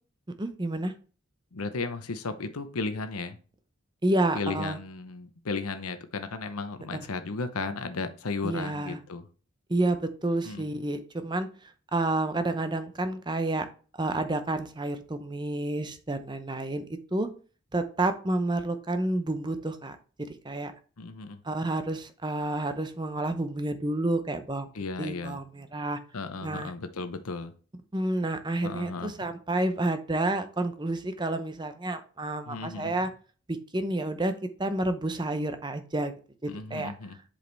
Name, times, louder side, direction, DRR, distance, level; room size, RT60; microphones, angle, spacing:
voice 1, 0.4-0.9 4.0-4.8 6.9-7.0 8.4-9.0 9.7-11.5 11.9-13.7 14.0-16.8 17.1-17.3 17.7-20.0 20.4-20.7 21.4-24.7 25.0-26.0 26.4-26.7 27.9-33.1 33.5-34.3 34.6-36.1 36.7-36.9, right 2 dB, 20° right, 9 dB, 0.7 m, -29 dB
voice 2, 1.5-3.4 4.3-9.2 10.4-10.6 21.0-21.4 24.7-25.4 26.1-27.5 28.6-29.3 32.5-33.0 36.5-37.2, left 3 dB, 90° left, 9 dB, 0.8 m, -35 dB
7.8 x 5.0 x 3.3 m, 0.37 s
head